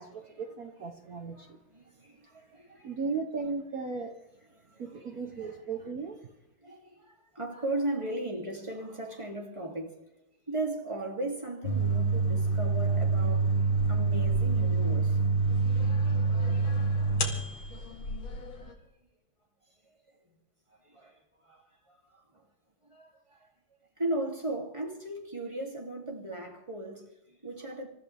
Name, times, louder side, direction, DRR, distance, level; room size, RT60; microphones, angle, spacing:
voice 1, 0.0-1.6 2.8-4.1 4.8-6.2, right 4 dB, 50° right, 1.3 m, -36 dB
voice 2, 1.1-2.9 4.5-5.5 6.6-10.0 10.5-13.5 13.8-15.2 16.7-16.9 18.5-18.7 20.8-21.6 21.9-22.4 22.9-23.5 24.0-27.9, right 1 dB, 15° right, 2.9 m, -37 dB
sound 1, 11.6-18.7, right 3 dB, 65° left, 2.7 m, -27 dB
27.5 x 14.0 x 3.5 m
omnidirectional pair, 2.3 m